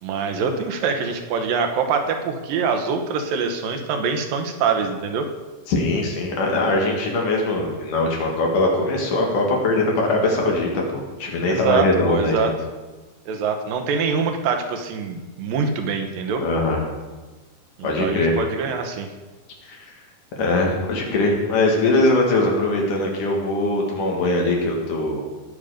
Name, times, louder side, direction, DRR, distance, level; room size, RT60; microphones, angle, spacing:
voice 1, 0.0-5.3 11.4-12.5 13.3-16.4 17.8-19.1, right 5 dB, 85° right, 5 dB, 2.8 m, -24 dB
voice 2, 5.7-12.5 16.4-16.8 17.8-18.4 19.7-19.8 20.4-25.2, left 2 dB, 70° left, -1 dB, 3.6 m, -21 dB
18.5 x 7.0 x 5.1 m, 1.2 s
omnidirectional pair, 3.9 m